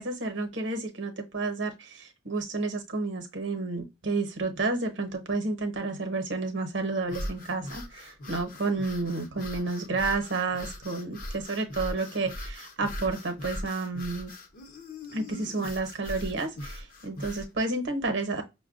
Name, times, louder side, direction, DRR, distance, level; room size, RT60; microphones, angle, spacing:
voice 1, 0.0-14.3 15.1-18.4, right 3 dB, 65° right, 0.8 m, -31 dB
sound 1, 7.0-17.5, left 1 dB, 45° left, 0.7 m, -40 dB
5.5 x 2.2 x 2.4 m
head